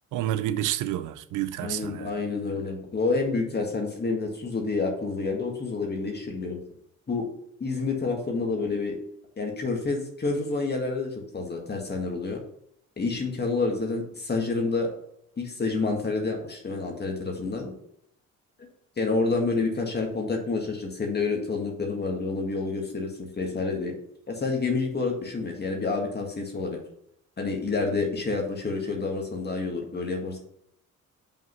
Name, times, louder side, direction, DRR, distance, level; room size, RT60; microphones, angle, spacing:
voice 1, 0.1-2.1, right 12 dB, 90° right, 0.6 m, -29 dB
voice 2, 1.6-6.6 7.1-7.3 7.6-9.0 9.4-12.4 13.0-14.9 15.4-17.7 19.0-23.9 24.3-26.8 27.4-30.4, left 3 dB, 35° left, 1.9 m, -28 dB
5.6 x 5.2 x 5.9 m
cardioid pair, 90°, 30 cm